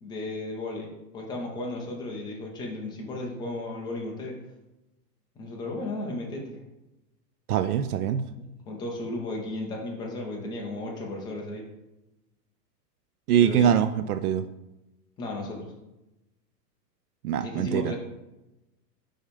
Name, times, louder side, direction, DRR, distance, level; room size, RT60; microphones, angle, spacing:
voice 1, 0.0-4.4 5.4-6.6 8.3-11.7 13.4-13.7 15.2-15.7 17.4-18.0, left 2 dB, 10° left, -1 dB, 0.5 m, -34 dB
voice 2, 7.5-8.2 13.3-14.5 17.2-17.9, right 9 dB, 65° right, 11 dB, 0.5 m, -23 dB
5.0 x 4.0 x 5.1 m, 0.97 s
hypercardioid pair, 150°, 49 cm